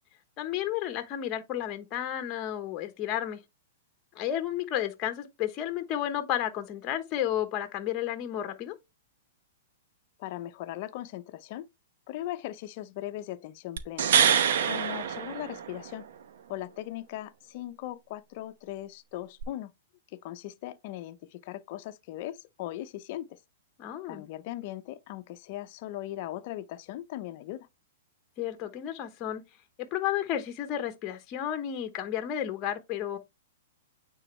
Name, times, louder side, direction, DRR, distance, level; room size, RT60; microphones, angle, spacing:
voice 1, 0.4-3.4 4.1-8.7 23.8-24.3 28.4-29.4 29.8-33.2, left 11 dB, 35° left, 1.0 m, -32 dB
voice 2, 10.2-11.7 12.1-14.1 14.6-16.1 16.5-19.7 20.1-23.4 24.1-27.7, left 14 dB, 50° left, 0.7 m, -39 dB
sound 1, 13.8-16.0 19.4-19.5, right 8 dB, 70° right, 0.8 m, -25 dB
9.0 x 3.9 x 3.2 m
hypercardioid pair, 135°, 0 cm